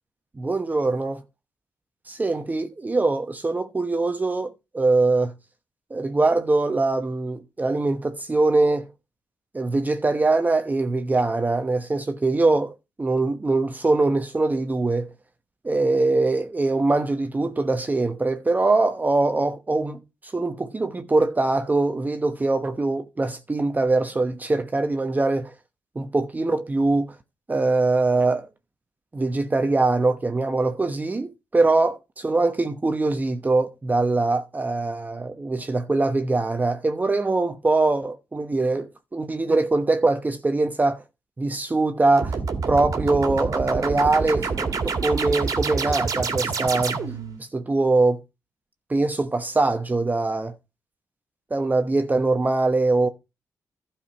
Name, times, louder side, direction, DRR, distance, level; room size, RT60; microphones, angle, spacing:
voice 1, 0.4-1.2 2.1-5.3 5.9-8.9 9.5-15.1 15.6-25.5 25.9-27.2 27.5-28.5 29.1-41.0 41.4-42.4 42.7-47.0 47.4-48.2 48.9-50.6 51.5-53.1, right 3 dB, 25° right, 1.1 m, -23 dB
sound 1, 42.2-47.4, right 4 dB, 60° right, 1.9 m, -27 dB
12.0 x 5.0 x 5.8 m
cardioid pair, 75°, 7 cm